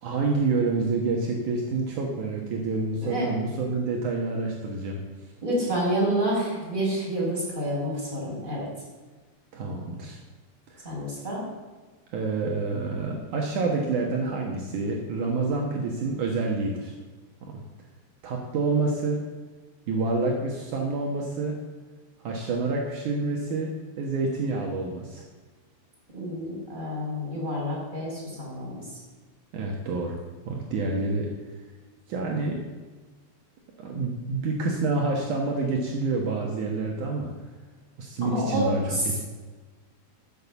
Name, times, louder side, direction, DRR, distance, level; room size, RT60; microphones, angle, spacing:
voice 1, 0.0-5.0 9.5-10.2 10.7-10.9 12.1-16.9 17.5-17.6 18.2-19.2 19.9-21.6 22.2-25.2 29.5-30.2 30.5-31.3 32.1-32.6 33.8-37.3 38.0-39.2, right 3 dB, 75° right, 0 dB, 1.8 m, -28 dB
voice 2, 3.0-3.3 5.4-8.7 10.8-11.4 26.1-29.0 38.2-39.2, equal, 10° right, -5 dB, 4.8 m, -28 dB
15.0 x 6.9 x 7.0 m, 1.3 s
omnidirectional pair, 5.6 m